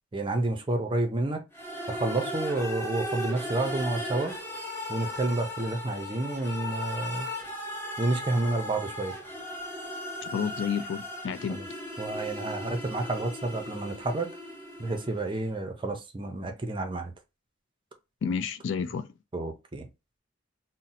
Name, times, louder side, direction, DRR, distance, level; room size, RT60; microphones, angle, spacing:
voice 1, 0.1-1.4 1.9-4.3 4.9-7.3 8.0-9.1 11.5-11.6 12.0-14.3 14.8-17.1 19.3-19.9, right 2 dB, 25° right, 0.5 m, -30 dB
sound 1, 1.5-15.4, equal, 10° left, 0.7 m, -37 dB
voice 2, 10.2-11.6 18.2-19.1, left 6 dB, 65° left, 0.3 m, -30 dB
2.7 x 2.1 x 4.0 m
head